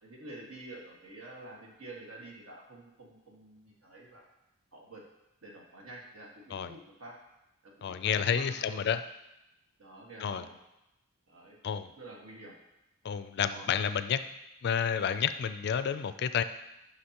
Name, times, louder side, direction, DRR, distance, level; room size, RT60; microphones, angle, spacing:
voice 1, 0.0-4.3 4.7-5.0 5.4-7.1 7.8-8.8 9.8-10.5 11.3-11.6 12.0-12.5 13.5-13.8, right 2 dB, 75° right, -2 dB, 1.7 m, -48 dB
voice 2, 7.8-9.0 10.2-10.5 11.6-11.9 13.0-14.2 14.6-16.4, left 7 dB, 50° left, 12 dB, 0.3 m, -30 dB
9.7 x 5.9 x 2.9 m, 0.90 s
head